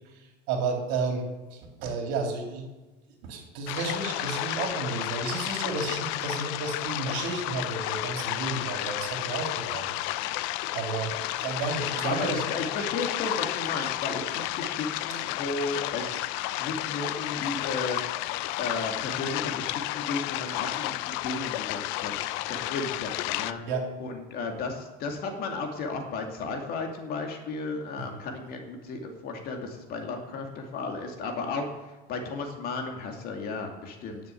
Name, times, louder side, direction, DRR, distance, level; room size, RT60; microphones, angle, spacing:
voice 1, 0.1-2.7 3.2-9.9 10.7-12.4 23.7-23.8, right 4 dB, 70° right, 2 dB, 3.2 m, -32 dB
sound 1, 3.7-23.5, left 16 dB, 65° left, 0.6 m, -32 dB
voice 2, 12.0-16.3 16.6-18.2 18.6-22.2 22.5-23.6 24.0-34.2, left 3 dB, 45° left, 3 dB, 2.3 m, -34 dB
10.0 x 6.9 x 9.1 m, 1.1 s
supercardioid pair, 135°, 21 cm